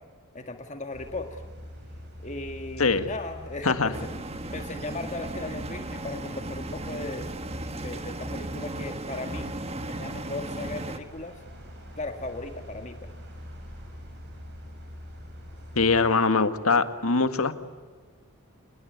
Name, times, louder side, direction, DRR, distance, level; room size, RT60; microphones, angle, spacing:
voice 1, 0.3-1.4 2.2-4.1 4.5-7.3 7.7-9.5 9.9-11.4 12.0-13.1, left 2 dB, 35° left, 6 dB, 1.8 m, -37 dB
sound 1, 0.9-16.1, equal, 55° right, 7.7 m, -44 dB
voice 2, 2.8-3.1 3.6-3.9 15.8-17.5, left 4 dB, 80° left, 10 dB, 1.8 m, -22 dB
sound 2, 3.9-11.0, right 2 dB, 30° right, 1.5 m, -36 dB
28.0 x 21.0 x 9.4 m, 1.5 s
head